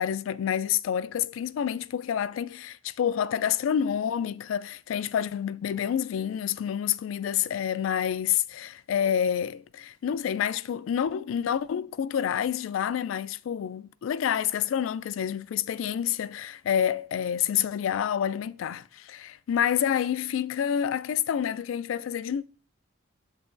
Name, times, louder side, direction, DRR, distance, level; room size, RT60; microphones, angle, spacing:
voice 1, 0.0-22.4, left 9 dB, 90° left, 0.3 m, -28 dB
7.9 x 5.6 x 2.6 m
head